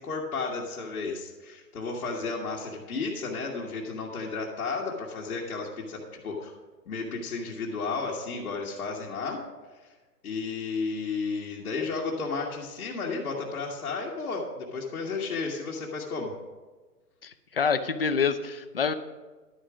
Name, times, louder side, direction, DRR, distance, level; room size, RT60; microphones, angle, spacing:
voice 1, 0.0-6.5 6.9-9.4 9.8-9.9 10.2-16.3, left 4 dB, 65° left, -4 dB, 1.7 m, -33 dB
voice 2, 17.2-18.9, left 6 dB, 40° left, 11 dB, 0.4 m, -27 dB
11.5 x 5.0 x 7.0 m, 1.3 s
hypercardioid pair, 165°, 48 cm